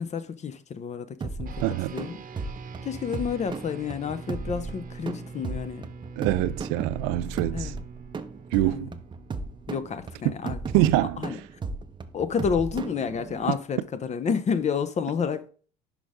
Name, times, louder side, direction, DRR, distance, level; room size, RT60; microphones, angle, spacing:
voice 1, 0.0-1.6 1.9-2.2 2.8-5.9 7.5-7.8 8.6-8.9 9.7-10.6 11.2-11.4 12.1-15.5, left 6 dB, 35° left, 0.7 m, -30 dB
sound 1, 1.2-13.5, right 4 dB, 20° right, 0.7 m, -36 dB
sound 2, 1.5-11.1, right 4 dB, 40° right, 1.0 m, -44 dB
voice 2, 1.6-2.0 6.2-7.7 8.5-8.9 10.2-11.2, right 16 dB, 75° right, 0.4 m, -25 dB
6.0 x 5.1 x 3.6 m
supercardioid pair, 95°, 21 cm